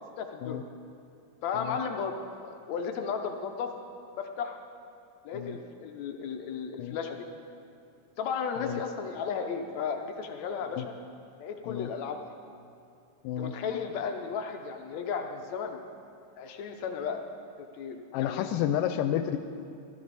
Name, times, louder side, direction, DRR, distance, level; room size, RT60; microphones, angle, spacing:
voice 1, 0.2-0.6 1.4-2.2 2.4-3.7 4.2-4.6 5.3-7.3 8.2-10.8 11.4-12.2 13.4-15.8 16.4-17.2 17.8-18.5, left 6 dB, 70° left, 5 dB, 1.8 m, -34 dB
voice 2, 18.1-19.4, left 11 dB, 90° left, 8 dB, 2.2 m, -30 dB
18.0 x 13.5 x 4.0 m, 2.6 s
omnidirectional pair, 3.7 m